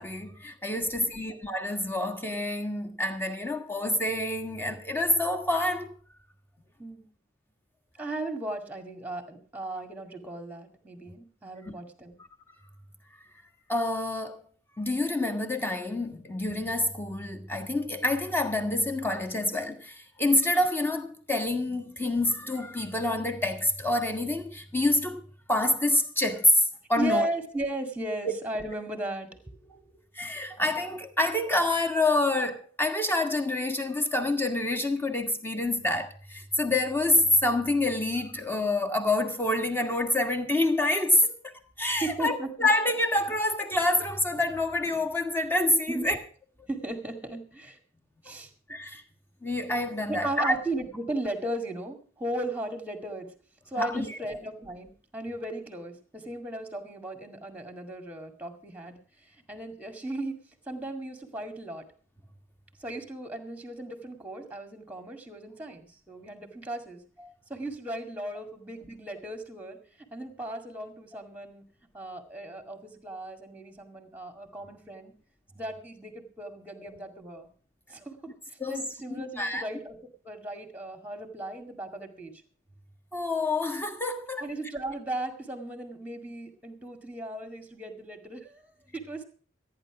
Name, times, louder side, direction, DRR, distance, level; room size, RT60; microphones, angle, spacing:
voice 1, 0.0-5.9 11.7-11.8 13.7-14.4 14.8-25.2 25.5-26.6 26.9-27.3 30.1-41.5 41.8-46.2 48.7-49.0 49.4-50.6 53.8-54.2 76.8-76.9 78.6-78.8 79.1-79.6 83.1-84.5, left 2 dB, 10° left, 1.5 m, -27 dB
voice 2, 0.7-1.3 6.8-7.1 8.0-12.2 27.0-30.0 42.0-42.7 45.9-46.2 46.7-47.8 48.2-48.5 50.1-53.3 53.7-61.8 62.8-67.0 67.5-71.6 71.9-75.1 75.5-77.5 77.9-80.0 80.2-82.4 84.4-89.2, right 1 dB, 10° right, 2.0 m, -36 dB
14.0 x 9.8 x 6.0 m
head